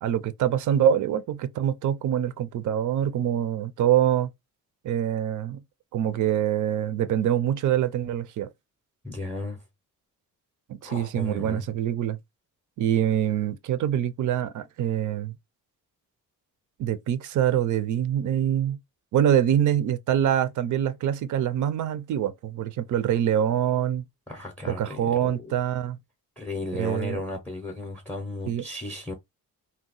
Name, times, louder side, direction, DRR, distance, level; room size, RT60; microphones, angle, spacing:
voice 1, 0.0-4.3 4.8-5.6 5.9-8.5 10.7-12.2 12.8-15.4 16.8-18.8 19.1-24.0 24.7-26.0 26.8-27.2 28.5-28.6, right 10 dB, 55° right, 0.5 m, -25 dB
voice 2, 9.0-9.6 10.8-11.7 24.3-25.6 26.4-29.1, left 2 dB, 5° left, 0.5 m, -35 dB
2.8 x 2.1 x 3.8 m
wide cardioid pair, 170°, 36 cm